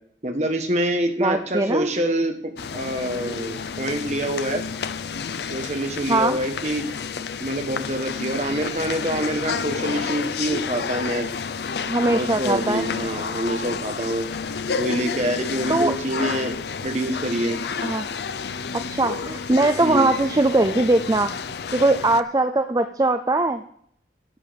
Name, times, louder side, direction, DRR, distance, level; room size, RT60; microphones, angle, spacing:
voice 1, 0.2-4.6 5.5-6.9 7.4-11.3 12.1-14.2 14.8-16.5 16.8-17.6 19.8-20.1, right 1 dB, 40° right, 5 dB, 1.3 m, -26 dB
voice 2, 1.2-1.9 6.1-6.4 11.9-12.8 15.7-15.9 17.8-18.0 18.7-21.3 21.7-23.6, right 2 dB, 20° right, 8 dB, 0.4 m, -21 dB
sound 1, 2.6-22.2, left 5 dB, 70° left, 0.5 m, -30 dB
11.0 x 8.2 x 5.2 m, 0.66 s
head